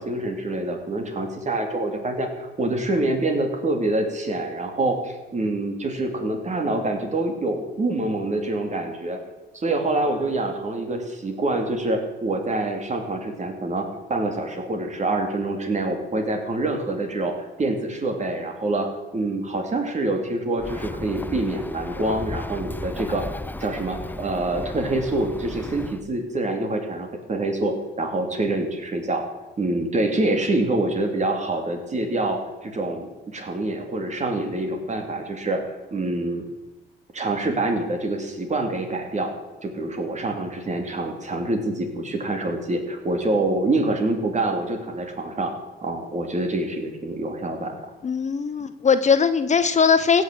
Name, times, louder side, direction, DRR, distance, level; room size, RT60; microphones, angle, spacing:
voice 1, 0.0-9.2 9.5-23.3 23.6-29.2 29.6-36.4 37.1-39.3 39.6-45.5 45.8-47.7, right 2 dB, 35° right, 4 dB, 2.9 m, -26 dB
Bird, 20.6-26.0, left 2 dB, 10° left, 0.6 m, -35 dB
voice 2, 48.0-50.2, left 6 dB, 35° left, 12 dB, 0.8 m, -20 dB
16.0 x 6.5 x 7.8 m, 1.1 s
cardioid pair, 90°, 20 cm